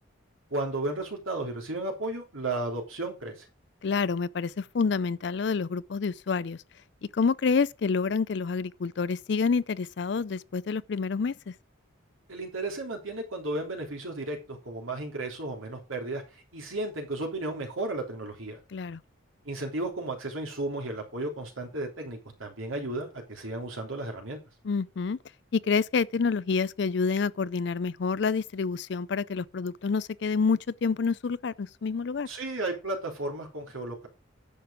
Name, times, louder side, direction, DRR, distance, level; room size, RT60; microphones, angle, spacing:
voice 1, 0.5-3.5 12.3-18.6 19.4-24.4 32.3-34.1, right 2 dB, 90° right, 3.4 m, -34 dB
voice 2, 3.8-6.6 7.1-11.5 18.7-19.0 24.6-25.2 25.5-32.3, left 5 dB, 60° left, 0.4 m, -28 dB
10.5 x 6.8 x 5.0 m
head